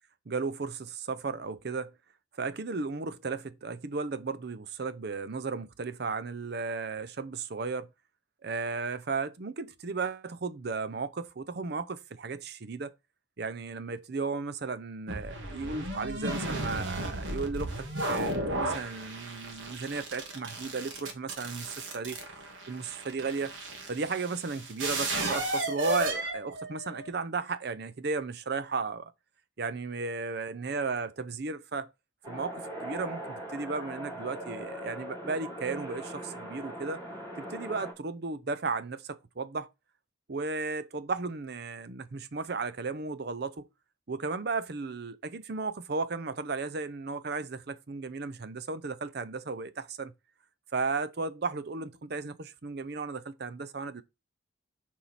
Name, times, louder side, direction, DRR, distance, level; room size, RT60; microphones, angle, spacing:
voice 1, 0.3-1.9 2.4-7.9 8.4-12.9 13.4-22.2 22.7-23.5 23.9-29.1 29.6-31.9 32.3-37.0 37.4-39.7 40.3-43.7 44.1-50.1 50.7-54.0, right 4 dB, 55° right, 0.6 m, -35 dB
sound 1, 15.1-27.1, right 1 dB, 75° right, 1.8 m, -34 dB
sound 2, 32.2-37.9, right 1 dB, 20° right, 3.2 m, -40 dB
7.0 x 4.7 x 4.1 m
head